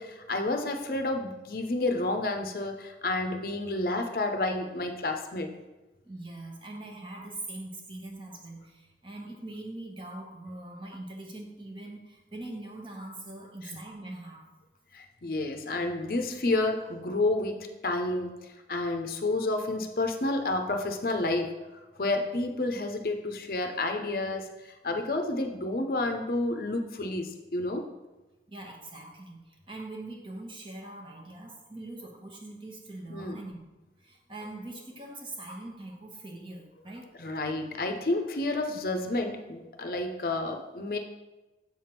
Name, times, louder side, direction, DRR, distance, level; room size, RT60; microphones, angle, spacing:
voice 1, 0.0-5.5 13.7-13.8 14.9-18.3 18.7-21.5 22.0-27.8 33.1-33.4 37.2-41.0, left 2 dB, 55° left, 5 dB, 0.6 m, -30 dB
voice 2, 6.0-14.5 28.5-33.6 34.0-37.1, right 2 dB, 30° right, 1 dB, 1.0 m, -42 dB
7.4 x 3.4 x 5.8 m, 1.1 s
head